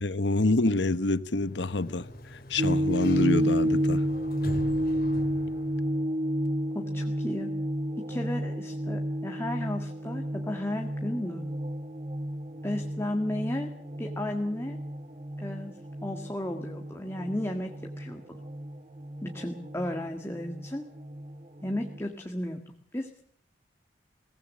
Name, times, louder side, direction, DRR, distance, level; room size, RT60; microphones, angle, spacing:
voice 1, 0.0-4.1, left 2 dB, 80° left, 1.1 m, -27 dB
Sliding door, 1.2-6.1, left 1 dB, 55° left, 2.6 m, -43 dB
sound 1, 2.6-22.0, equal, 35° right, 1.0 m, -31 dB
voice 2, 6.7-7.5 8.1-11.4 12.6-13.7 14.0-14.8 15.4-15.7 16.0-17.7 18.0-18.2 19.2-20.8 21.6-22.6 22.9-23.1, left 1 dB, 15° left, 1.8 m, -33 dB
22.0 x 18.5 x 7.6 m
head